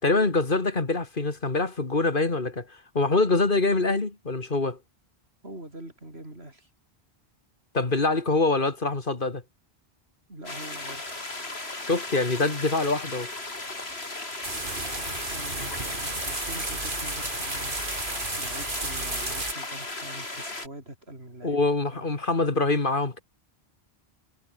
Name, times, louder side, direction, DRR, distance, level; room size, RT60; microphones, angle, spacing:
voice 1, 0.0-4.8 7.7-9.4 11.9-13.3 21.4-23.2, left 3 dB, 55° left, 2.5 m, -25 dB
voice 2, 5.4-6.7 10.3-11.2 14.8-21.6 21.9-22.1, right 1 dB, 85° right, 7.4 m, -44 dB
sound 1, 10.5-20.7, left 2 dB, 90° left, 4.2 m, -36 dB
sound 2, 14.4-19.5, right 2 dB, 55° right, 3.4 m, -33 dB
omnidirectional pair, 1.0 m